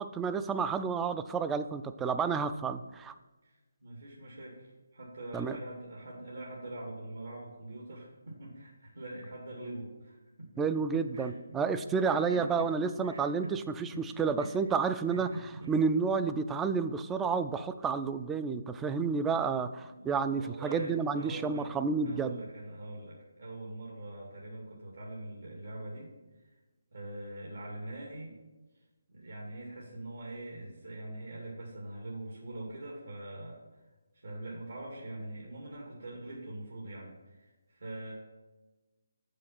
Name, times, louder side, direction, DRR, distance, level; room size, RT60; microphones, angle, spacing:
voice 1, 0.0-3.1 5.3-5.6 10.6-15.3 15.7-22.4, right 5 dB, 10° right, 10 dB, 0.3 m, -30 dB
voice 2, 3.8-10.5 10.9-11.4 12.1-12.7 13.0-13.5 13.9-14.6 15.1-15.7 19.8-21.7 22.0-26.1 26.9-28.4 29.1-33.8 34.2-38.1, right 1 dB, 75° right, -3 dB, 2.3 m, -43 dB
7.0 x 6.5 x 5.9 m, 1.2 s
figure-of-eight pair, 155°, 0 cm